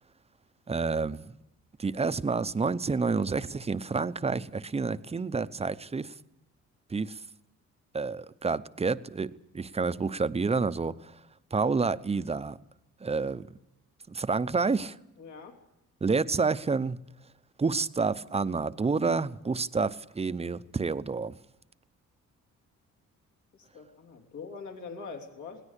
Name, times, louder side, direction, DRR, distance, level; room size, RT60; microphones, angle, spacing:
voice 1, 0.7-1.4 1.8-6.1 6.9-7.2 7.9-11.1 11.5-12.6 13.0-13.5 14.1-15.0 16.0-17.0 17.6-21.4, right 4 dB, 20° right, 0.7 m, -29 dB
voice 2, 15.2-15.6 23.5-25.6, left 4 dB, 75° left, 3.3 m, -43 dB
21.0 x 17.5 x 8.3 m
cardioid pair, 90°, 30 cm